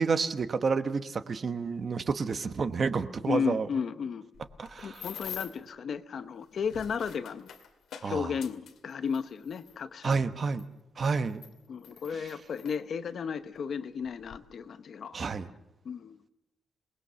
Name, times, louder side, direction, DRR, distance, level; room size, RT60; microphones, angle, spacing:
voice 1, 0.0-3.7 4.6-5.1 8.0-8.3 10.0-10.6 11.0-11.4 15.1-15.5, right 5 dB, 40° right, 10 dB, 1.1 m, -29 dB
voice 2, 3.3-4.3 4.8-7.5 8.0-10.2 11.7-15.2 15.8-16.2, left 6 dB, 50° left, 11 dB, 1.0 m, -34 dB
sound 1, 4.3-5.7 6.4-9.8 10.6-10.7 11.3-12.8 13.6-13.7 14.0-14.4, left 8 dB, 85° left, 2.2 m, -45 dB
27.5 x 20.0 x 6.9 m, 0.90 s
wide cardioid pair, 155°, 0 cm